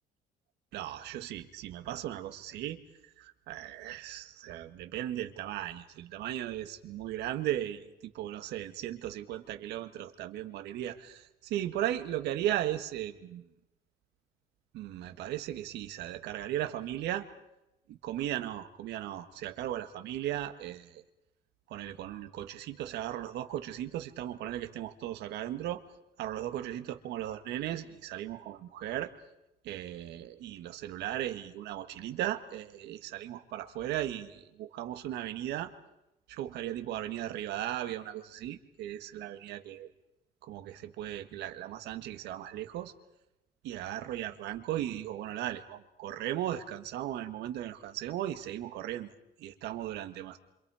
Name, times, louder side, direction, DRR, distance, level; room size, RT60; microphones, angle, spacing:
voice 1, 0.7-2.8 3.2-7.9 8.1-13.5 14.7-17.2 17.9-21.0 21.7-25.8 26.2-29.1 29.6-35.7 36.3-39.9 40.4-42.9 43.6-49.1 49.4-50.4, right 12 dB, 80° right, 8 dB, 1.7 m, -37 dB
28.0 x 26.0 x 5.0 m, 0.90 s
cardioid pair, 110°, 17 cm